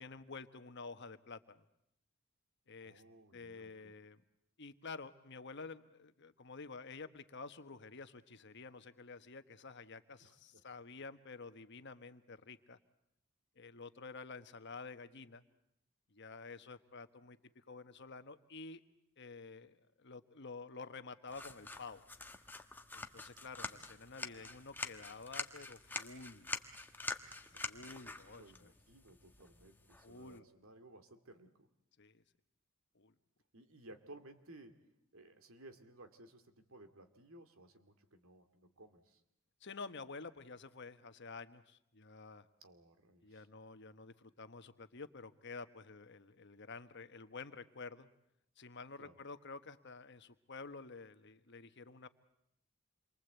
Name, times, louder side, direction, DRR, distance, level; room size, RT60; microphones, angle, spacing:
voice 1, 0.0-1.6 2.7-3.0 3.3-4.2 4.6-12.8 13.6-15.4 16.1-18.8 19.2-22.0 22.9-26.5 27.5-28.7 30.0-30.4 32.0-32.2 32.9-33.1 39.6-42.5 43.2-48.1 48.6-52.1, left 4 dB, 55° left, 11 dB, 1.2 m, -50 dB
voice 2, 2.8-3.9 10.2-10.6 23.6-24.6 27.2-27.6 28.4-31.7 33.5-34.8 35.1-39.2 42.6-43.5 49.0-49.2, right 1 dB, 85° right, 8 dB, 2.3 m, -59 dB
sound 1, 21.3-30.4, left 3 dB, 10° left, 1.2 m, -46 dB
28.0 x 23.0 x 8.1 m, 0.79 s
head